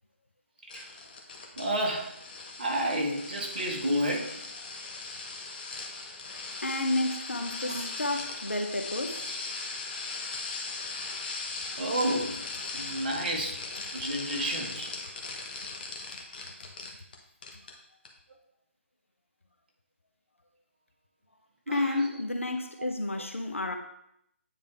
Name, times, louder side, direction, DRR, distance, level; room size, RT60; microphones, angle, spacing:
sound 1, 0.7-17.2 17.4-17.7 18.1-18.2, left 3 dB, 45° left, 1.1 m, -39 dB
voice 1, 1.6-2.1 2.6-4.3 7.7-7.8 11.8-12.4 12.7-13.6 13.9-14.9 21.7-22.0, right 1 dB, 45° right, 1.4 m, -30 dB
voice 2, 6.6-9.3 21.7-23.8, left 2 dB, 80° left, 0.9 m, -31 dB
9.1 x 3.4 x 3.3 m
figure-of-eight pair, 145°, 7 cm